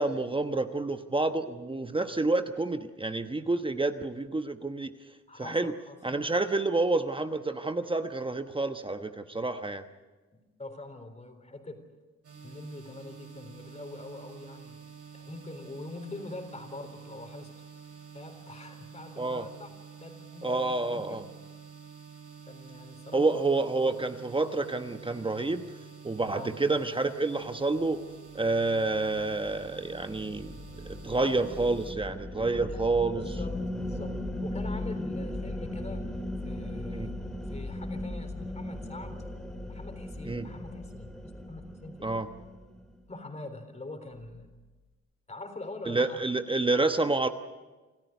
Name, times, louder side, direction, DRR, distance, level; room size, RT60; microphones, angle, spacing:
voice 1, 0.0-4.9 5.4-5.7 6.0-9.8 19.2-19.5 20.4-21.2 23.1-25.6 26.0-28.0 28.3-30.6 30.8-33.4 36.9-37.1 40.2-40.5 42.0-42.3 45.9-47.3, right 3 dB, 15° right, 8 dB, 1.1 m, -28 dB
voice 2, 5.3-6.0 10.3-11.9 12.4-14.8 15.1-17.7 18.1-19.7 20.0-21.3 22.5-23.4 26.3-26.5 31.2-31.6 32.5-32.8 33.2-36.1 36.4-37.2 37.5-39.2 39.7-42.3 43.1-44.5 45.3-46.2, left 2 dB, 20° left, 7 dB, 3.8 m, -44 dB
sound 1, 12.2-31.9, right 7 dB, 50° right, 4.7 m, -49 dB
sound 2, 28.9-43.0, left 1 dB, ahead, 2.1 m, -38 dB
27.0 x 13.5 x 9.5 m, 1.2 s
cardioid pair, 90°, 30 cm